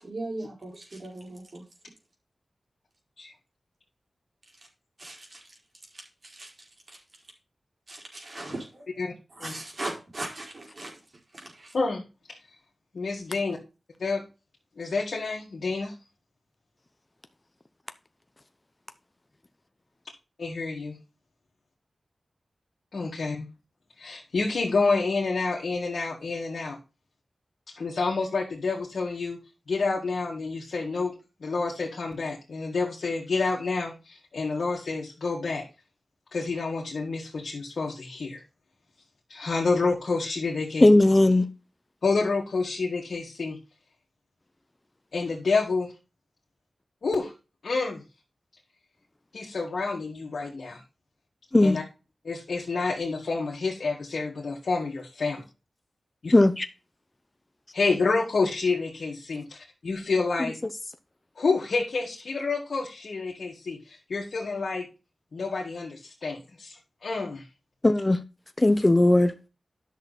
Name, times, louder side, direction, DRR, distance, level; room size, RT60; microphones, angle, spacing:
voice 1, 0.0-1.6 5.0-5.4 5.9-6.5 6.9-7.0 7.9-8.9 9.3-10.9 11.3-11.7, right 2 dB, 55° right, 4.2 m, -38 dB
voice 2, 11.7-12.1 12.9-13.6 14.0-14.2 14.8-15.9 20.4-21.0 22.9-23.5 24.0-26.8 27.7-29.4 29.7-31.1 31.4-35.7 36.3-38.4 39.3-40.9 42.0-43.6 45.1-45.9 47.0-47.3 47.6-48.0 49.3-50.8 51.6-51.8 52.2-55.4 56.2-56.3 57.7-59.6 59.8-60.6 61.4-64.9 65.3-67.5, left 4 dB, 80° left, 1.9 m, -28 dB
voice 3, 40.8-41.5 51.5-51.8 56.3-56.7 67.8-68.2 68.6-69.4, left 2 dB, 30° left, 0.7 m, -18 dB
10.5 x 6.4 x 4.1 m
cardioid pair, 55°, 0 cm